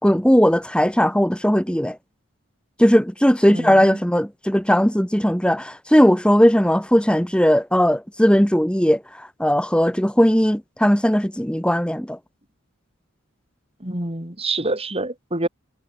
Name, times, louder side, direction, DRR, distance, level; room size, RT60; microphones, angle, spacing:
voice 1, 0.0-2.0 2.8-12.2, equal, 5° left, 3.3 m, -18 dB
voice 2, 3.5-4.0 13.8-15.5, right 2 dB, 30° right, 5.4 m, -27 dB
head